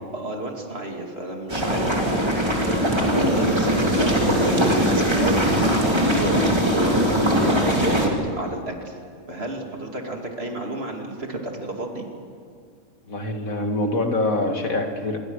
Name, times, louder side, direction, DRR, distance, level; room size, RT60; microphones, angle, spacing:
voice 1, 0.1-9.0 9.3-12.1, right 2 dB, 45° right, 2 dB, 2.9 m, -31 dB
sound 1, 1.5-8.1, equal, 20° right, 2.7 m, -21 dB
voice 2, 13.1-15.2, left 2 dB, 75° left, 4 dB, 2.5 m, -25 dB
26.5 x 23.0 x 6.4 m, 2.2 s
omnidirectional pair, 1.5 m